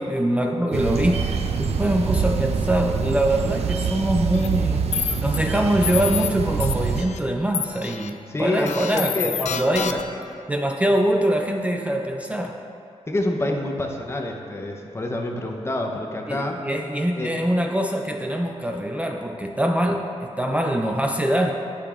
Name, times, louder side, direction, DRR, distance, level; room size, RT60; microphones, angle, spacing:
voice 1, 0.0-4.9 5.2-9.1 9.4-10.0 10.5-12.6 16.3-21.5, right 1 dB, 10° right, 2 dB, 0.4 m, -23 dB
sound 1, 0.7-7.0, right 5 dB, 65° right, 0.5 m, -25 dB
sound 2, 4.3-4.5 4.9-5.4 5.8-6.3 6.6-7.2 7.5-8.1 8.7-10.2, left 7 dB, 80° left, 0.4 m, -29 dB
voice 2, 8.3-9.3 9.8-9.9 13.1-16.6 17.2-17.3, left 1 dB, 20° left, 2 dB, 0.7 m, -27 dB
12.0 x 6.8 x 2.4 m, 2.6 s
wide cardioid pair, 120°, 12 cm